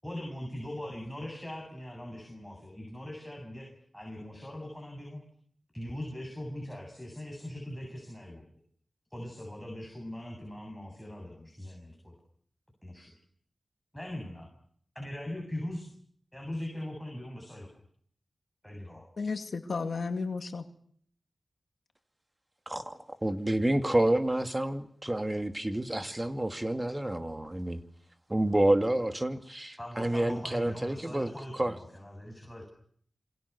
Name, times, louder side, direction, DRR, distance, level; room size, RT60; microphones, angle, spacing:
voice 1, 0.0-5.2 5.7-8.5 9.1-12.2 12.8-13.1 13.9-14.5 14.9-15.9 16.3-17.7 18.6-19.3 29.8-32.6, left 1 dB, 5° left, 1 dB, 7.8 m, -41 dB
voice 2, 19.2-20.6, left 4 dB, 75° left, 7 dB, 2.4 m, -33 dB
voice 3, 22.7-27.8 28.3-31.8, right 1 dB, 20° right, 8 dB, 2.5 m, -29 dB
27.5 x 25.5 x 7.0 m, 0.62 s
wide cardioid pair, 65°, 0 cm